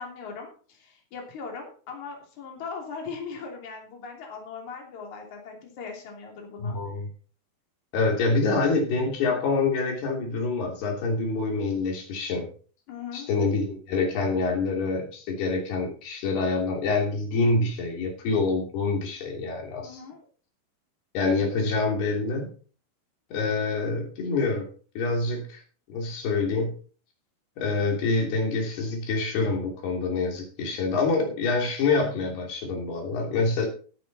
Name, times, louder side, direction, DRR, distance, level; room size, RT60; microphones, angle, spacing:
voice 1, 0.0-6.8 12.9-13.3 19.8-20.2, left 5 dB, 50° left, 1 dB, 4.2 m, -39 dB
voice 2, 6.6-7.1 7.9-12.5 13.1-20.0 21.1-22.5 23.3-24.7 25.0-25.6 25.9-26.7 27.6-33.7, left 3 dB, 90° left, 1 dB, 5.1 m, -26 dB
15.5 x 9.1 x 4.2 m, 0.40 s
omnidirectional pair, 4.5 m